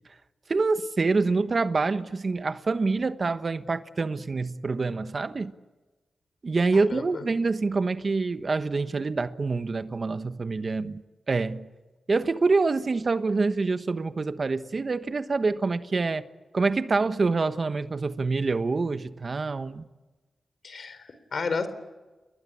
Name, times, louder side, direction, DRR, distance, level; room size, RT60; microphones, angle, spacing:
voice 1, 0.5-5.5 6.4-11.0 11.3-11.7 12.1-16.3 16.5-19.9, right 3 dB, 45° right, 1.2 m, -26 dB
voice 2, 6.7-7.2 20.6-21.7, left 4 dB, 60° left, 4.1 m, -32 dB
30.0 x 22.0 x 8.7 m
cardioid pair, 85°, 0 cm